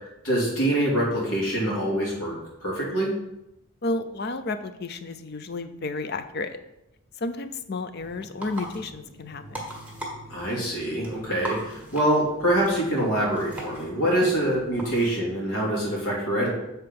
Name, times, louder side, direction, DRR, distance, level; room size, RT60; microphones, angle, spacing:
voice 1, 0.2-3.1 10.3-16.5, right 1 dB, 85° left, -4 dB, 2.9 m, -25 dB
voice 2, 3.8-6.6 7.2-9.7 14.2-14.3, left 2 dB, 50° left, 10 dB, 0.5 m, -32 dB
sound 1, 8.0-15.1, right 1 dB, 5° right, 1.6 m, -40 dB
7.7 x 4.3 x 5.3 m, 0.89 s
head